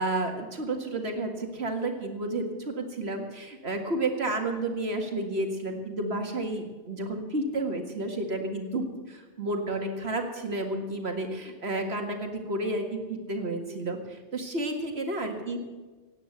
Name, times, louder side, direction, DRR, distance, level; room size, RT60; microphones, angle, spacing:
voice 1, 0.0-15.6, right 2 dB, 60° right, 4 dB, 2.1 m, -31 dB
17.0 x 9.2 x 7.9 m, 1.3 s
omnidirectional pair, 1.2 m